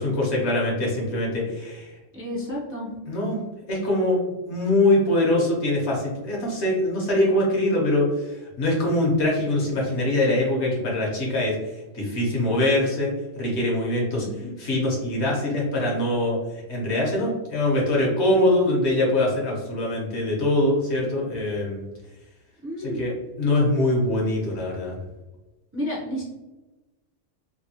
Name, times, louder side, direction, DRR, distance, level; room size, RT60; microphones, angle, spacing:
voice 1, 0.0-1.9 3.1-3.4 3.7-4.2 4.5-11.5 11.9-14.2 14.6-16.4 16.7-21.8 22.8-25.0, left 1 dB, 65° left, -3 dB, 1.2 m, -23 dB
voice 2, 2.1-2.9 14.2-14.5 22.6-23.0 25.7-26.2, equal, 15° right, -5 dB, 0.5 m, -31 dB
3.4 x 2.2 x 2.7 m, 1.1 s
omnidirectional pair, 1.3 m